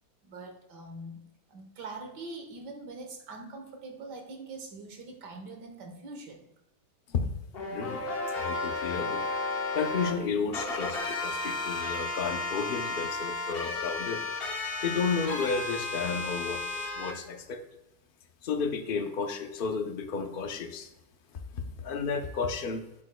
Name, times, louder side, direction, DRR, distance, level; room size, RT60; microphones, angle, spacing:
voice 1, 0.2-1.2 1.5-6.4, right 2 dB, 85° right, 4 dB, 1.7 m, -43 dB
sound 1, 7.5-10.1 10.5-17.1, left 3 dB, 40° left, 1.1 m, -33 dB
voice 2, 8.3-9.2 9.7-14.2 14.8-16.6 16.9-17.6 18.4-20.9 21.8-22.9, left 5 dB, 55° left, 6 dB, 0.5 m, -32 dB
8.0 x 7.5 x 2.2 m, 0.93 s
omnidirectional pair, 1.8 m